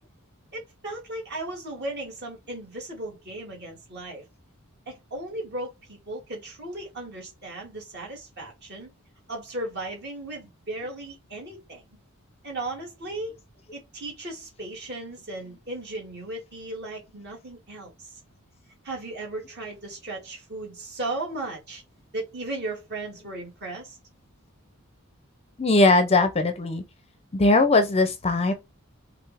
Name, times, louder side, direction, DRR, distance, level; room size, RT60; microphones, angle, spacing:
voice 1, 0.5-4.2 4.9-8.9 9.3-11.8 12.4-13.4 13.7-18.2 18.8-21.8 22.1-24.0, right 2 dB, 50° right, 2.5 m, -36 dB
voice 2, 25.6-26.8 27.3-28.5, left 2 dB, 30° left, 0.6 m, -20 dB
5.4 x 2.7 x 3.4 m
head